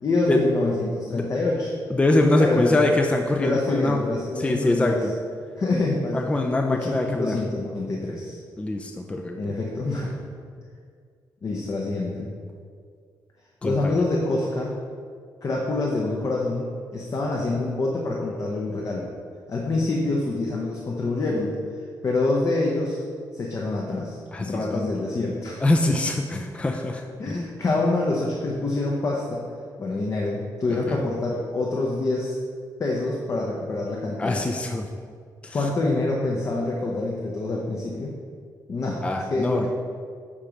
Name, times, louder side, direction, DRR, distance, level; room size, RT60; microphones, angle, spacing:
voice 1, 0.0-1.7 2.4-2.8 3.4-5.1 5.6-6.2 6.7-8.4 9.4-10.1 11.4-12.3 13.6-14.7 15.4-19.1 19.5-21.6 22.0-23.0 23.3-26.0 27.2-29.4 29.8-32.4 32.8-34.4 35.5-38.1 38.7-39.0 39.3-39.7, left 2 dB, 45° left, -2 dB, 0.8 m, -26 dB
voice 2, 1.9-4.0 4.4-5.1 6.1-7.4 8.6-9.5 13.6-14.0 24.3-24.9 25.6-27.5 30.7-31.0 34.2-34.9 35.4-35.6 39.0-39.7, left 2 dB, 15° left, 3 dB, 0.4 m, -24 dB
8.5 x 2.9 x 5.0 m, 2.1 s
cardioid pair, 105°, 8 cm